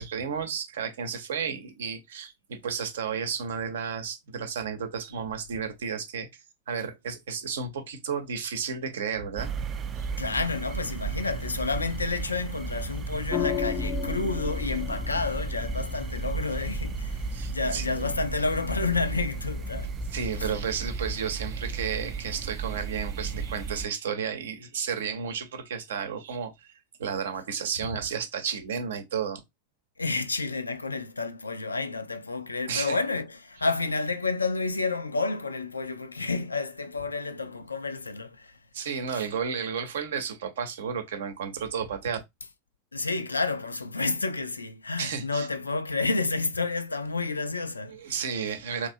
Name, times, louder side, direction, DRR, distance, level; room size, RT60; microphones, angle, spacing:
voice 1, 0.0-6.3 6.7-9.5 10.0-10.1 17.3-18.1 20.1-29.4 32.7-33.0 38.7-42.2 45.0-45.5 47.9-48.9, right 6 dB, 60° right, 0.7 m, -32 dB
sound 1, 9.4-23.9, right 4 dB, 25° right, 0.4 m, -34 dB
voice 2, 10.2-19.9 20.4-20.5 30.0-38.5 39.1-39.2 42.9-48.0, left 3 dB, 80° left, 0.3 m, -30 dB
sound 2, 13.3-21.9, left 6 dB, 25° left, 0.6 m, -37 dB
3.1 x 2.7 x 2.6 m
figure-of-eight pair, 90°, 0 cm